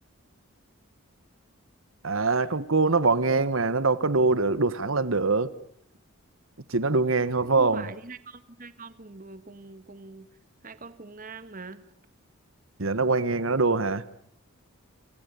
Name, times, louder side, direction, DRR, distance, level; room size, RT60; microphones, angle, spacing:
voice 1, 2.0-5.5 6.7-7.9 12.8-14.0, right 3 dB, 75° right, 15 dB, 1.4 m, -23 dB
voice 2, 7.4-10.3 10.6-11.8, right 3 dB, 40° right, 13 dB, 1.5 m, -43 dB
29.5 x 27.0 x 7.0 m, 0.64 s
head